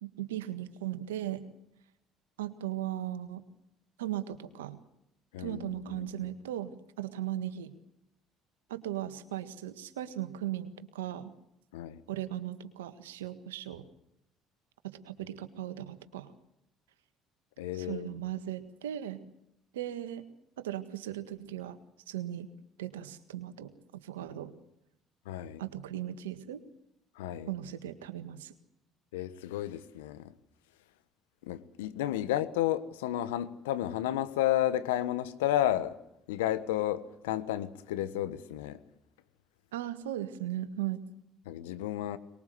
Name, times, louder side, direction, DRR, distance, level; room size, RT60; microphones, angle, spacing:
voice 1, 0.0-1.4 2.4-3.4 4.0-4.8 5.4-6.7 7.0-7.7 8.7-11.3 12.1-13.9 14.8-16.3 17.7-19.2 19.7-20.3 20.6-21.8 22.1-22.5 22.8-24.5 25.6-26.6 27.5-28.5 39.7-41.0, right 12 dB, 85° right, 10 dB, 1.7 m, -37 dB
voice 2, 5.3-6.1 11.7-12.0 17.6-18.2 25.2-25.6 27.2-27.5 29.1-30.3 31.4-36.0 36.3-38.8 41.5-42.2, left 12 dB, 85° left, 13 dB, 1.3 m, -32 dB
23.5 x 21.0 x 7.9 m, 0.80 s
hypercardioid pair, 60°, 0 cm